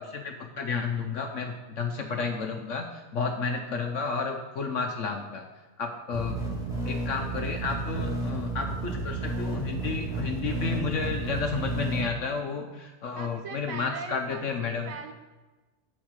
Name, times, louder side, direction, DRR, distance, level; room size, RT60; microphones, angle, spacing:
voice 1, 0.0-5.4 5.8-6.4 6.9-14.9, left 5 dB, 60° left, 4 dB, 0.8 m, -31 dB
sound 1, 6.1-12.0, right 3 dB, ahead, 1.9 m, -32 dB
voice 2, 13.1-15.1, right 5 dB, 65° right, 6 dB, 1.0 m, -40 dB
8.9 x 4.5 x 6.4 m, 1.2 s
omnidirectional pair, 1.8 m